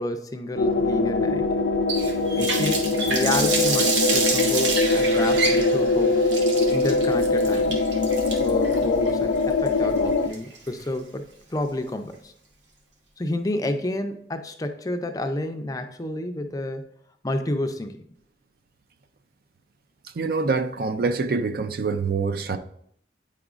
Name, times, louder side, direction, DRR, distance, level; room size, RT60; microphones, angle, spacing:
voice 1, 0.0-1.4 2.4-6.1 6.7-7.8 8.4-11.2 11.5-12.3 13.2-16.9 17.2-18.0, left 1 dB, 20° left, 0.4 m, -30 dB
sound 1, 0.6-10.3, left 3 dB, 85° left, 0.4 m, -22 dB
Water tap faucet, 1.9-10.8, right 3 dB, 80° right, 0.9 m, -28 dB
voice 2, 20.2-22.6, right 4 dB, 55° right, 0.4 m, -25 dB
8.7 x 4.9 x 2.4 m
head